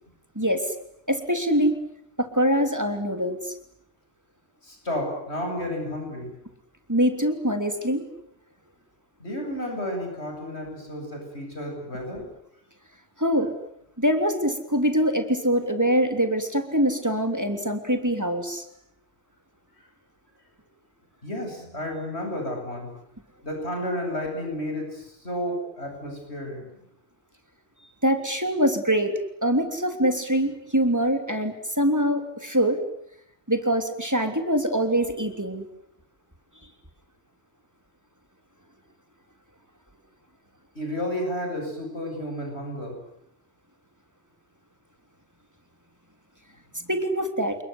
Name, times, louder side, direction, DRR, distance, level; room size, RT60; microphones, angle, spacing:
voice 1, 1.1-1.8 2.2-3.5 6.9-8.0 13.2-13.5 14.0-18.6 28.0-32.8 33.5-35.6 46.9-47.6, equal, 15° right, 6 dB, 3.2 m, -24 dB
voice 2, 4.6-6.3 9.2-12.2 21.2-22.9 23.4-26.8 40.7-43.0, left 1 dB, 80° left, 3 dB, 8.3 m, -32 dB
28.5 x 21.5 x 9.5 m, 0.76 s
omnidirectional pair, 1.1 m